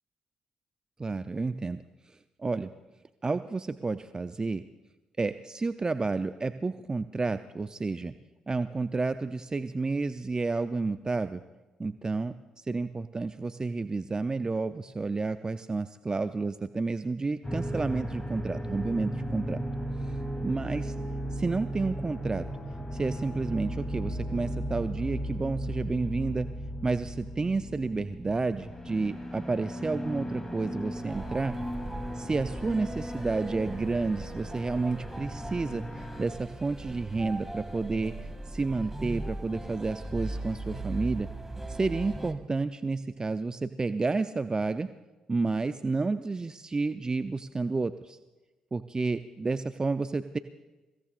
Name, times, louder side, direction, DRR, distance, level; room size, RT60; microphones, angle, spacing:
voice 1, 1.0-1.8 2.4-2.7 3.2-4.6 5.2-8.1 8.5-11.4 11.8-19.6 20.4-20.9 21.3-22.4 22.9-26.5 26.8-31.5 32.1-38.1 38.5-41.3 41.7-44.9 45.3-48.2 48.7-50.4, right 3 dB, 30° right, 11 dB, 0.6 m, -30 dB
sound 1, 17.4-36.3, equal, 20° left, 3.0 m, -36 dB
sound 2, 31.1-42.3, right 1 dB, 10° right, 2.3 m, -39 dB
28.5 x 16.5 x 2.5 m, 1.1 s
hypercardioid pair, 45°, 3 cm